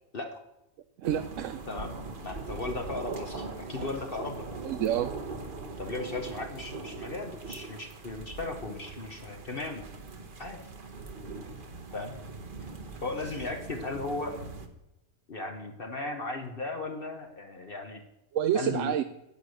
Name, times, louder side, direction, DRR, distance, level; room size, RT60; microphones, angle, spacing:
sound 1, 1.0-14.7, right 3 dB, 40° right, 1.2 m, -41 dB
voice 1, 1.0-1.6 4.6-5.1 18.3-19.0, right 10 dB, 65° right, 9 dB, 0.9 m, -28 dB
voice 2, 1.7-4.5 5.8-9.9 10.4-10.6 11.9-12.1 13.0-14.4 15.3-18.0 18.5-18.9, left 2 dB, 40° left, 4 dB, 1.1 m, -36 dB
10.5 x 8.7 x 6.5 m, 0.90 s
omnidirectional pair, 1.5 m